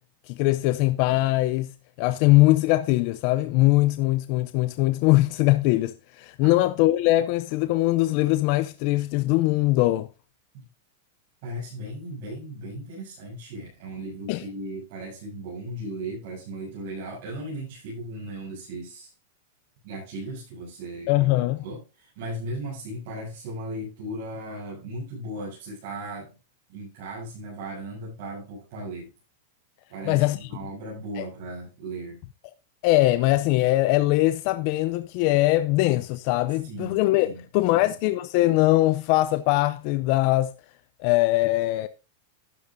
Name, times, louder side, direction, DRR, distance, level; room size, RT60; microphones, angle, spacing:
voice 1, 0.3-1.7 2.0-10.1 14.3-14.4 21.1-21.6 30.1-30.5 31.2-31.3 32.8-40.5 41.0-41.9, left 18 dB, 35° left, 0.4 m, -21 dB
voice 2, 11.4-19.1 19.8-26.4 26.7-29.1 29.9-32.2 36.6-37.7, right 1 dB, 40° right, 7.1 m, -37 dB
12.0 x 11.0 x 2.6 m
supercardioid pair, 175°, 0 cm